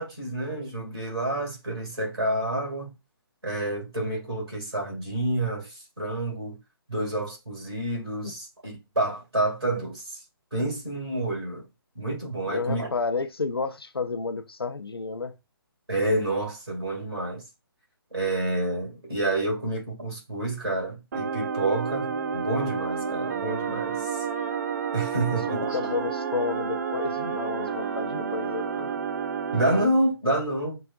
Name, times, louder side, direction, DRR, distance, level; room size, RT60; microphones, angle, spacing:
voice 1, 0.0-2.9 3.4-6.6 6.9-10.2 10.5-11.7 11.9-12.9 15.9-17.4 18.1-24.2 24.9-25.9 29.5-30.8, right 1 dB, 85° right, 2.3 m, -28 dB
voice 2, 12.5-15.3 25.3-25.4 25.7-28.9, left 4 dB, 75° left, 0.6 m, -31 dB
sound 1, 21.1-29.8, right 6 dB, 45° right, 0.4 m, -30 dB
Wind instrument woodwind instrument, 22.0-30.0, left 1 dB, 10° left, 0.6 m, -44 dB
5.6 x 2.5 x 2.4 m
figure-of-eight pair, 140°, 13 cm